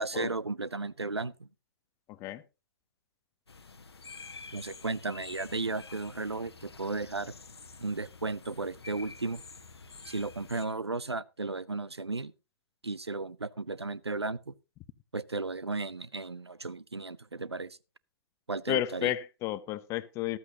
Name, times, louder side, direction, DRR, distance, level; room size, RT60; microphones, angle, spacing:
voice 1, 0.0-1.5 4.5-7.3 7.8-9.4 10.0-12.3 12.8-14.5 15.1-17.8 18.5-19.1, right 3 dB, 90° right, 0.5 m, -34 dB
sound 1, 3.5-10.7, left 4 dB, 75° left, 1.1 m, -49 dB
voice 2, 18.7-20.4, left 14 dB, 20° left, 0.6 m, -32 dB
14.0 x 12.5 x 2.8 m
figure-of-eight pair, 120°, 13 cm